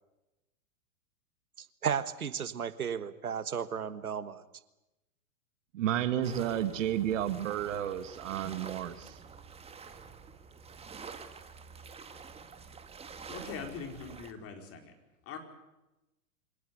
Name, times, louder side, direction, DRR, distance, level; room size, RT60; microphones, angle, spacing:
voice 1, 1.6-4.4, right 7 dB, 85° right, 13 dB, 1.4 m, -34 dB
voice 2, 5.7-9.2, right 11 dB, 60° right, 10 dB, 2.1 m, -31 dB
sound 1, 6.2-14.3, right 5 dB, 15° right, 1.9 m, -48 dB
voice 3, 13.3-14.9 15.2-15.4, left 5 dB, 30° left, 4 dB, 4.7 m, -42 dB
24.5 x 18.5 x 9.5 m, 0.99 s
hypercardioid pair, 110°, 43 cm